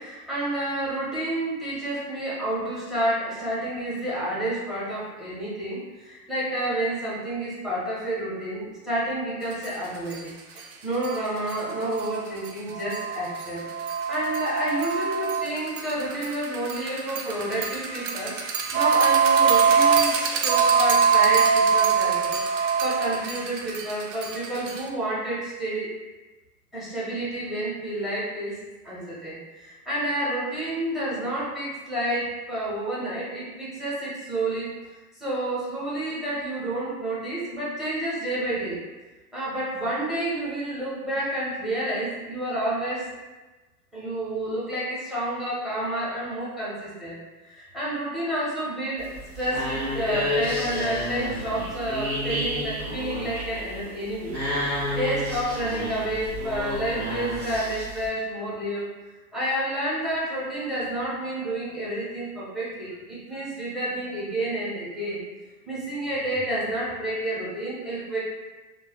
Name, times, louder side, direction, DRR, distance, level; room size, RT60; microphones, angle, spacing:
voice 1, 0.0-22.4 22.8-25.9 26.7-28.6 28.8-34.7 35.2-38.8 39.3-43.0 43.9-47.2 47.5-54.3 54.6-58.9 59.3-65.2 65.7-68.2, right 1 dB, ahead, -8 dB, 0.8 m, -30 dB
sound 1, 9.6-9.7 10.1-10.2 10.6-10.7 11.0-24.9, right 6 dB, 55° right, 0.5 m, -23 dB
sound 2, 49.0-58.1, equal, 35° right, 1.3 m, -30 dB
3.1 x 2.2 x 2.2 m, 1.2 s
hypercardioid pair, 105°, 47 cm